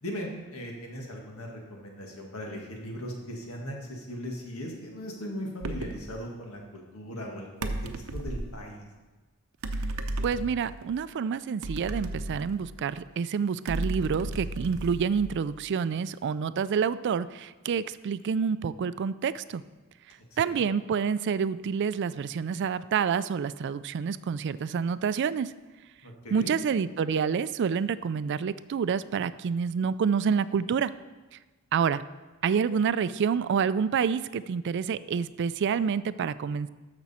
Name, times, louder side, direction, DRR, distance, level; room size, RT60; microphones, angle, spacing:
voice 1, 0.0-7.7 8.1-8.8 20.5-20.6 26.0-26.5, equal, 85° left, 0 dB, 1.8 m, -38 dB
sound 1, 5.6-6.1 7.6-8.6 9.6-10.9 11.6-13.0 13.7-15.6, right 2 dB, 90° right, 0.7 m, -34 dB
voice 2, 10.2-19.6 20.4-25.5 26.3-30.9 31.7-32.0 32.4-36.7, right 6 dB, 55° right, 16 dB, 0.3 m, -28 dB
13.0 x 6.1 x 4.2 m, 1.2 s
head